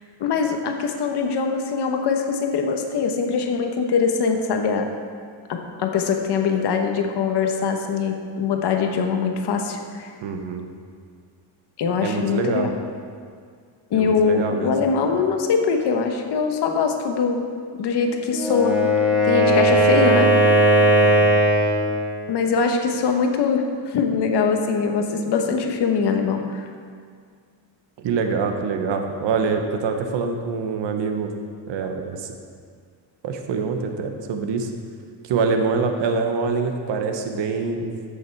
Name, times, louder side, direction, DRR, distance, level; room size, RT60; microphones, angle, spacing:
voice 1, 0.2-4.9 5.5-10.1 11.8-12.7 13.9-17.4 17.8-18.8 19.2-20.3 22.3-26.7, left 5 dB, 60° left, 4 dB, 1.1 m, -22 dB
voice 2, 10.2-10.7 12.0-12.7 13.9-14.7 19.5-19.8 28.0-31.3 31.7-32.3 33.2-34.7 35.2-38.0, right 5 dB, 65° right, 5 dB, 1.1 m, -25 dB
Wind instrument woodwind instrument, 18.3-21.9, right 1 dB, 5° right, 1.6 m, -17 dB
14.0 x 6.9 x 4.6 m, 2.1 s
cardioid pair, 175°, 46 cm